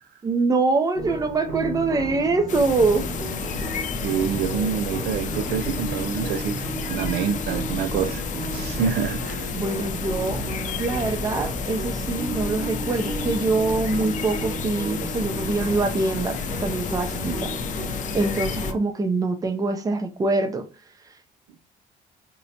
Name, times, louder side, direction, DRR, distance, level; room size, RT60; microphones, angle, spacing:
voice 1, 0.2-3.0 9.5-10.4 10.8-17.5 18.1-20.6, right 3 dB, 20° right, 0.5 m, -24 dB
sound 1, 0.9-18.8, right 3 dB, 50° right, 1.1 m, -34 dB
sound 2, 2.5-18.7, left 5 dB, 50° left, 0.5 m, -31 dB
voice 2, 4.0-8.2 8.5-9.5, right 8 dB, 80° right, 0.4 m, -27 dB
5.2 x 2.0 x 2.8 m
cardioid pair, 110°, 17 cm